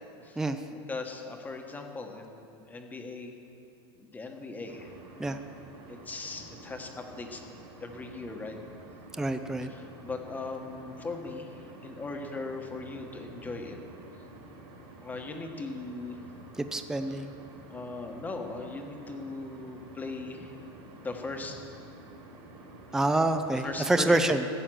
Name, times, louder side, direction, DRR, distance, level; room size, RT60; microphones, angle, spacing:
voice 1, 0.7-3.3 4.0-4.9 5.2-5.3 5.9-7.4 7.8-8.6 9.6-11.5 11.8-13.8 15.0-16.2 17.1-17.2 17.7-20.6 20.9-21.6 22.9-23.0 23.5-24.2, left 3 dB, 10° left, 3 dB, 1.3 m, -39 dB
sound 1, 4.7-23.7, right 2 dB, 60° right, 3.7 m, -49 dB
voice 2, 9.2-9.7 16.6-17.3 22.9-24.4, right 2 dB, 5° right, 8 dB, 0.5 m, -27 dB
16.0 x 8.3 x 6.3 m, 2.5 s
supercardioid pair, 145°, 13 cm